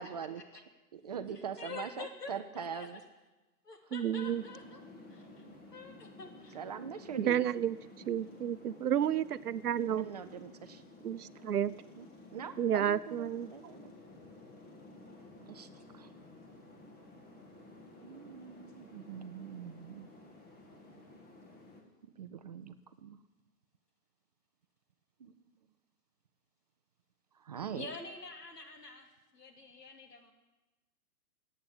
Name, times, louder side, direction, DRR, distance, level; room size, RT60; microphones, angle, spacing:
voice 1, 0.0-0.6 0.9-3.0 6.5-7.4 9.8-10.8 12.0-12.1 12.3-13.9 15.5-15.7 15.9-16.1 18.0-20.1 22.0-22.7 23.0-23.2 25.2-25.3 27.4-27.9, right 7 dB, 30° right, 10 dB, 0.5 m, -42 dB
voice 2, 1.3-3.0 3.7-4.8 5.1-5.4 5.7-6.6 6.9-7.0 27.8-29.1 29.3-30.3, left 3 dB, 90° left, 4 dB, 3.0 m, -47 dB
voice 3, 3.9-4.4 7.2-7.8 8.1-10.1 11.0-11.7 12.6-13.5, right 9 dB, 75° right, 16 dB, 0.8 m, -31 dB
sound 1, 4.2-21.8, left 2 dB, 20° left, 2.2 m, -54 dB
15.5 x 8.6 x 9.7 m, 1.1 s
hypercardioid pair, 135°, 46 cm